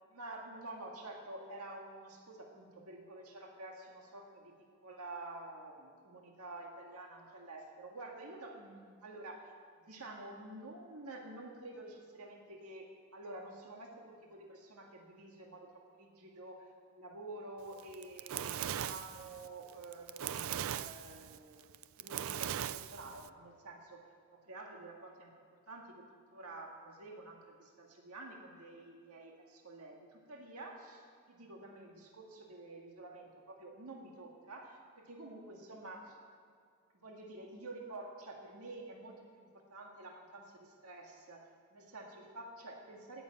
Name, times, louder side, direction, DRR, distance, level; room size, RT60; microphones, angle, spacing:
voice 1, 0.1-4.5 4.8-9.5 9.8-21.6 22.0-24.0 24.3-25.3 25.7-26.0 26.3-36.2 37.0-43.2, right 2 dB, 90° right, 0 dB, 1.9 m, -49 dB
Fire, 17.8-23.3, right 10 dB, 65° right, 0.4 m, -39 dB
17.0 x 7.1 x 9.0 m, 2.2 s
head